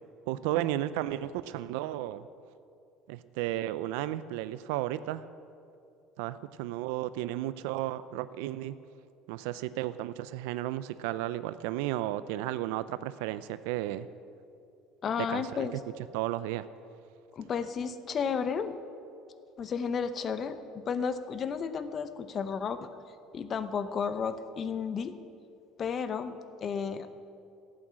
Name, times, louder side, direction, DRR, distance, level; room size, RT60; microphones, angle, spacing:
voice 1, 0.3-2.3 3.1-5.2 6.2-8.7 9.3-14.1 15.2-15.8 16.1-16.7, right 14 dB, 90° right, 14 dB, 0.4 m, -33 dB
voice 2, 15.0-15.7 17.3-18.7 19.6-22.8 23.3-25.1 25.8-26.3 26.6-27.1, left 6 dB, 35° left, 11 dB, 0.7 m, -32 dB
13.0 x 8.8 x 7.5 m, 2.5 s
cardioid pair, 135°, 0 cm